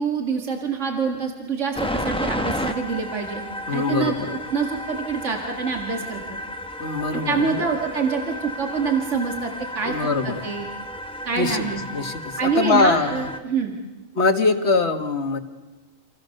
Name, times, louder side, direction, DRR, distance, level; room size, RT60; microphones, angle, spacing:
voice 1, 0.0-3.4 3.7-6.4 7.1-10.0 10.2-10.7 11.3-11.8 12.4-13.7, right 5 dB, 70° right, 2 dB, 2.4 m, -26 dB
sound 1, 1.7-13.4, left 1 dB, 5° left, 1.1 m, -32 dB
voice 2, 3.7-4.3 6.8-7.7 9.8-10.4 11.4-13.3 14.2-15.4, left 3 dB, 60° left, 7 dB, 1.9 m, -23 dB
29.0 x 26.5 x 6.6 m, 1.2 s
omnidirectional pair, 1.3 m